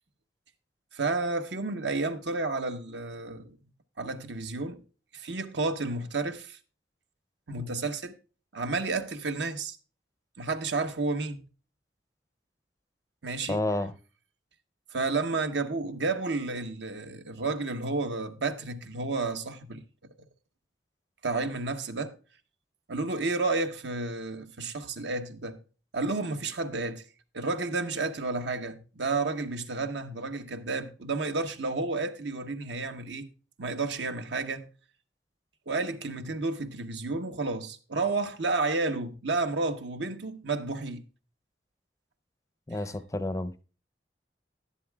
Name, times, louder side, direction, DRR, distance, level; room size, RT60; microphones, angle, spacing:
voice 1, 0.9-3.6 4.0-4.8 5.1-6.6 7.5-8.1 8.5-9.8 10.4-11.4 13.2-13.6 14.9-19.8 21.2-22.2 22.9-25.6 25.9-27.0 27.3-33.3 33.6-34.7 35.7-41.0, right 3 dB, 75° right, 1.0 m, -31 dB
voice 2, 13.5-13.9 42.7-43.6, left 1 dB, 15° left, 0.5 m, -30 dB
11.5 x 10.5 x 2.2 m
head